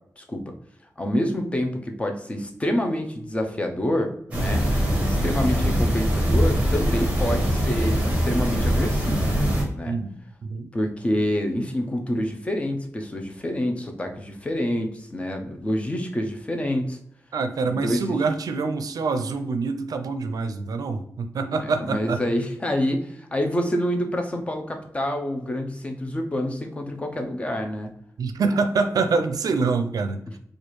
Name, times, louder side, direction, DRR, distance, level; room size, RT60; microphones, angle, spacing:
voice 1, 0.2-0.5 1.0-4.7 5.0-9.2 9.7-10.0 10.7-17.0 17.7-18.2 21.6-27.9, left 1 dB, 20° left, 4 dB, 0.5 m, -27 dB
sound 1, 4.3-9.6, equal, 20° right, 0.9 m, -22 dB
voice 2, 9.9-10.7 17.3-22.2 28.2-30.4, right 4 dB, 85° right, 8 dB, 0.4 m, -26 dB
4.3 x 2.4 x 3.0 m, 0.71 s
wide cardioid pair, 175°, 6 cm